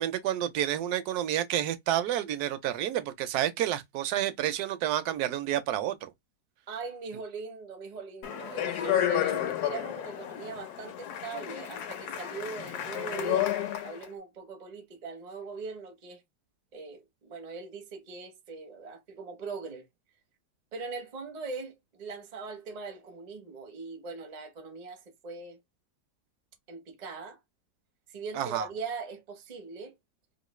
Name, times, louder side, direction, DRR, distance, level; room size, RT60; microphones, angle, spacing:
voice 1, 0.0-6.1 28.4-28.7, right 12 dB, 70° right, 1.0 m, -29 dB
voice 2, 6.7-16.2 16.7-19.9 20.7-25.6 26.7-27.4 28.1-29.9, right 4 dB, 45° right, 0.5 m, -40 dB
Speech, 8.2-14.0, left 11 dB, 70° left, 1.0 m, -31 dB
3.1 x 2.6 x 3.0 m
omnidirectional pair, 1.9 m